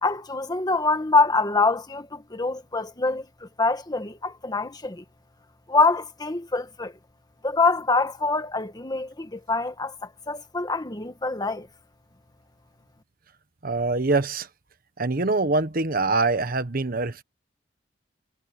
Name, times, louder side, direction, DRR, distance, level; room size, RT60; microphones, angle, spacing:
voice 1, 0.0-5.0 5.7-6.9 7.4-11.7, left 3 dB, 20° left, 1.7 m, -25 dB
voice 2, 13.6-14.5 15.0-17.2, right 3 dB, 55° right, 1.3 m, -24 dB
head